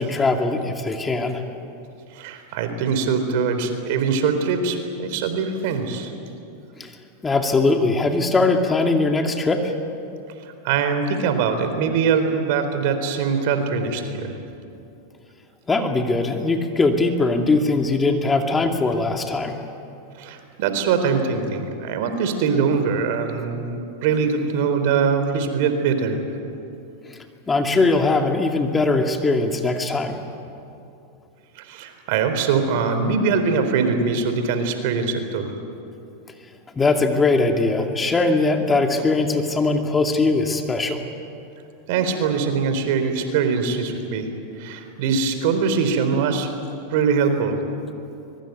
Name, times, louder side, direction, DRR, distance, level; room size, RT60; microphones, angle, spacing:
voice 1, 0.0-1.4 6.8-6.9 7.2-9.7 15.7-19.6 27.0-30.2 36.7-41.0, left 3 dB, 15° left, 4 dB, 2.4 m, -21 dB
voice 2, 2.1-6.1 10.6-14.3 20.2-26.2 31.6-35.5 41.9-44.3 44.6-46.5 46.9-47.6, right 5 dB, 65° right, 8 dB, 3.8 m, -22 dB
24.0 x 22.5 x 9.4 m, 2.7 s
hypercardioid pair, 110°, 0 cm